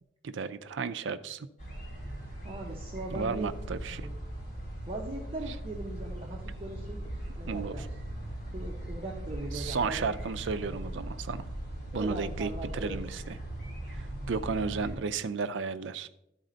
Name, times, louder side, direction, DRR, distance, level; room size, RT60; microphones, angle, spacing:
voice 1, 0.2-1.5 3.1-4.1 5.5-5.6 7.5-7.9 9.5-11.5 11.9-13.4 13.9-16.1, right 5 dB, 75° right, 13 dB, 0.4 m, -33 dB
sound 1, 1.6-15.0, right 1 dB, 50° left, 3.0 m, -39 dB
voice 2, 2.4-4.1 4.9-7.9 8.5-10.0 10.6-10.7 11.9-13.0, right 1 dB, 30° right, -1 dB, 0.8 m, -40 dB
12.5 x 4.1 x 3.9 m, 0.84 s
head